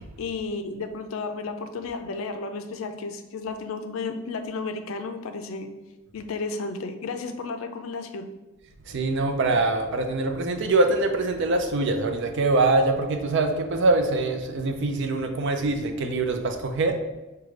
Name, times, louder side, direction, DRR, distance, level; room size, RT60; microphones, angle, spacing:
voice 1, 0.2-5.7 6.1-8.3, left 4 dB, 75° left, 7 dB, 0.4 m, -33 dB
voice 2, 8.9-17.0, right 2 dB, 60° right, 5 dB, 0.5 m, -24 dB
4.9 x 2.2 x 3.2 m, 1.1 s
head